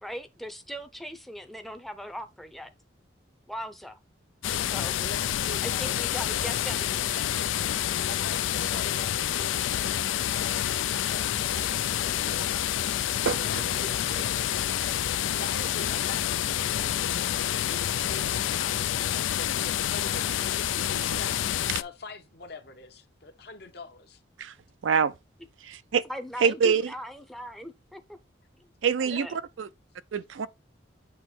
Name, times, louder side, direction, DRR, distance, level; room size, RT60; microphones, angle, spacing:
voice 1, 0.0-2.7 3.5-4.0 4.6-4.9 5.6-6.9 26.1-28.2 29.0-29.4, equal, ahead, 0.6 m, -39 dB
sound 1, 4.4-21.8, left 11 dB, 85° left, 0.4 m, -28 dB
voice 2, 5.0-6.0 6.3-12.7 13.1-14.9 15.2-20.8 21.2-24.2 29.1-29.2, left 3 dB, 55° left, 1.0 m, -45 dB
voice 3, 24.8-25.1 25.6-26.0 26.4-26.9 28.8-29.3 29.6-29.7 30.1-30.5, right 6 dB, 85° right, 0.5 m, -24 dB
7.9 x 3.0 x 4.3 m
head